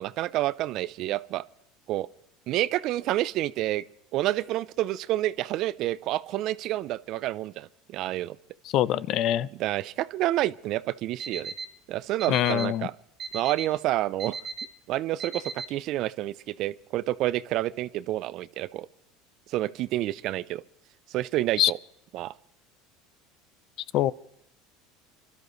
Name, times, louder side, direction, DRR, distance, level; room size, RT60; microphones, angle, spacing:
voice 1, 0.0-1.4 1.9-2.1 2.5-3.8 4.1-8.4 9.6-11.5 11.9-12.9 13.3-14.4 14.9-18.9 19.5-20.6 21.1-21.8 22.1-22.3, right 15 dB, 55° right, 0.5 m, -29 dB
voice 2, 8.7-9.5 12.3-12.9 21.6-21.7 23.9-24.1, left 12 dB, 55° left, 0.5 m, -23 dB
Alarm, 11.2-11.6 12.2-12.6 13.2-13.6 14.2-14.6 15.2-15.6, right 5 dB, 35° right, 1.7 m, -35 dB
27.5 x 13.0 x 3.1 m
supercardioid pair, 100°, 0 cm